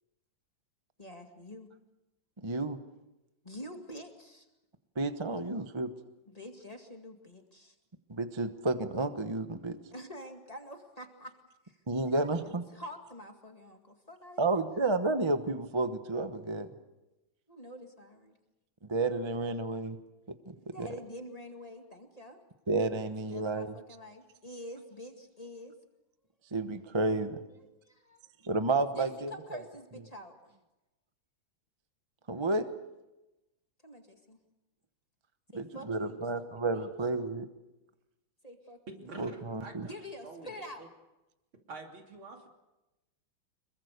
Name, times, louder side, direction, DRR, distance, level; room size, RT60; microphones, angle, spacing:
voice 1, 1.0-1.7 3.4-4.5 6.3-7.8 9.9-11.4 11.6-11.8 12.0-14.7 17.5-18.3 20.6-22.4 23.0-25.7 27.6-28.2 28.9-30.4 33.8-34.4 35.5-36.9 38.4-38.8 39.9-40.9, equal, 20° left, 4 dB, 2.1 m, -47 dB
voice 2, 2.4-2.8 5.0-5.9 8.1-9.8 11.9-12.6 14.4-16.7 18.9-20.0 20.5-20.9 22.7-23.7 26.5-27.4 28.4-29.6 32.3-32.7 35.5-37.5 39.2-39.9, right 2 dB, 20° right, 9 dB, 0.8 m, -31 dB
voice 3, 38.9-39.9 40.2-40.9 41.7-42.5, right 3 dB, 80° right, 2 dB, 3.7 m, -46 dB
26.0 x 22.5 x 6.7 m, 1.0 s
omnidirectional pair, 2.2 m